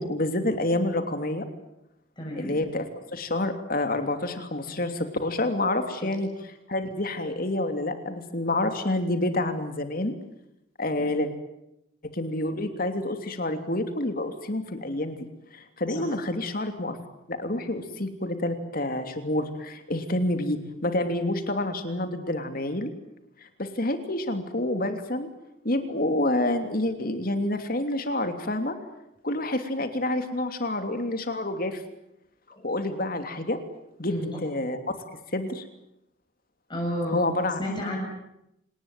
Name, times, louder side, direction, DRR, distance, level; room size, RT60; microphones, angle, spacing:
voice 1, 0.0-1.5 2.4-6.3 6.7-10.1 10.8-11.3 12.1-15.2 15.5-17.0 17.3-22.9 23.4-25.3 25.6-28.8 29.2-31.8 32.6-33.6 34.0-34.1 34.4-34.8 35.3-35.6 37.1-37.6, left 1 dB, 45° left, 7 dB, 3.0 m, -28 dB
voice 2, 2.2-2.6 6.0-6.1 11.0-11.1 16.0-16.1 32.5-32.7 34.1-34.3 36.7-37.2 37.6-38.0, equal, 25° left, -2 dB, 6.9 m, -31 dB
27.0 x 19.5 x 9.1 m, 0.85 s
head